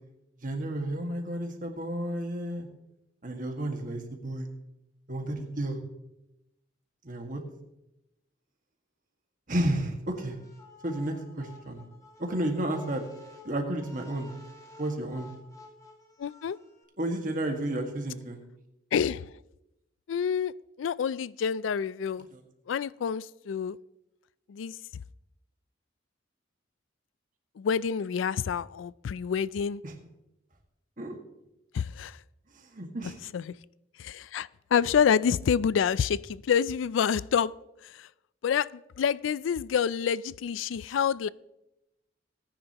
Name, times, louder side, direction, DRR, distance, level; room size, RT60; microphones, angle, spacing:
voice 1, 0.4-2.7 3.2-4.5 5.1-5.8 7.0-7.4 9.5-10.4 10.8-11.8 12.2-13.0 13.5-14.4 14.8-15.3 17.0-18.4 29.8-29.9 31.0-31.2 32.7-33.2, right 1 dB, 45° right, 3 dB, 1.8 m, -32 dB
sound 1, 10.1-16.8, left 2 dB, 20° left, 1.7 m, -52 dB
voice 2, 16.2-16.6 18.9-19.3 20.1-20.5 20.8-22.3 22.7-23.8 24.5-25.0 27.6-29.8 31.7-32.2 33.3-33.5 34.0-37.5 37.8-38.1 38.4-41.3, left 7 dB, 85° left, 20 dB, 0.3 m, -28 dB
18.5 x 10.0 x 2.9 m, 0.88 s
head